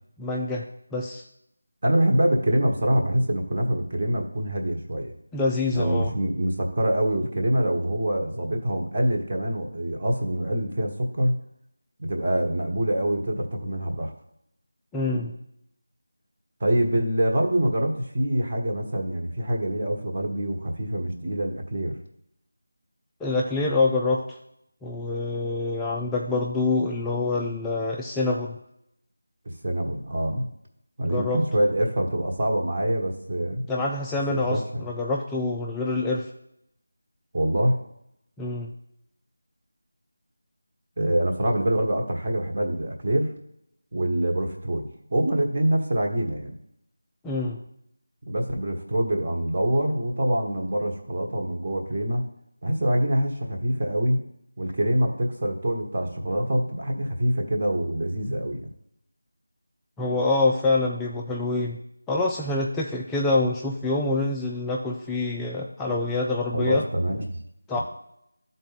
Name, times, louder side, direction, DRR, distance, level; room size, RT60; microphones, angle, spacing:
voice 1, 0.2-0.7 0.9-1.2 5.3-6.1 14.9-15.3 23.2-24.4 24.8-28.6 31.0-31.4 33.7-36.3 38.4-38.7 47.2-47.6 60.0-61.8 62.1-66.8 67.7-67.8, left 2 dB, 5° left, -3 dB, 0.3 m, -26 dB
voice 2, 1.8-5.1 5.7-11.4 12.0-14.1 16.6-21.9 29.4-30.5 31.0-33.6 34.3-34.8 37.3-37.8 41.0-43.3 43.9-46.5 48.3-52.3 52.6-54.2 54.6-58.7 66.5-67.4 67.7-67.8, right 1 dB, 35° right, 1 dB, 1.2 m, -25 dB
11.5 x 4.0 x 4.0 m, 0.77 s
figure-of-eight pair, 170°, 0 cm